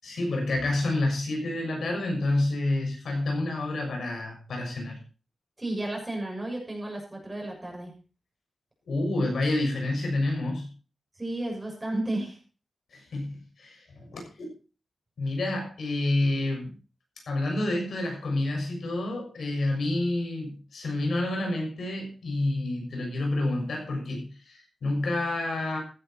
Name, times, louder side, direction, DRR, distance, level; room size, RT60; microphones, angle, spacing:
voice 1, 0.0-5.0 8.9-10.7 12.9-14.5 15.2-16.7 17.3-25.8, left 2 dB, 85° left, 2 dB, 6.5 m, -29 dB
voice 2, 5.6-7.9 11.1-12.4, right 1 dB, 15° right, 0 dB, 6.8 m, -33 dB
15.5 x 10.5 x 4.5 m, 0.36 s
wide cardioid pair, 115°, 0 cm